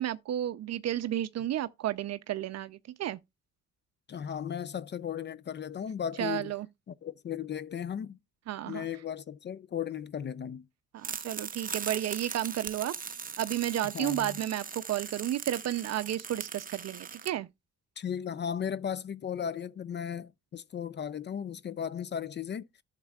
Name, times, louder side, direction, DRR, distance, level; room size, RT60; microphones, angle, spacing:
voice 1, 0.0-3.2 6.2-6.7 8.5-8.9 10.9-12.9 13.4-17.5, right 12 dB, 60° right, 0.5 m, -32 dB
voice 2, 4.1-6.5 7.0-8.2 8.7-10.6 13.9-14.4 18.0-22.7, left 8 dB, 35° left, 0.4 m, -36 dB
sound 1, 11.0-17.3, right 6 dB, 30° right, 0.8 m, -40 dB
12.0 x 7.3 x 2.3 m
cardioid pair, 90°, 30 cm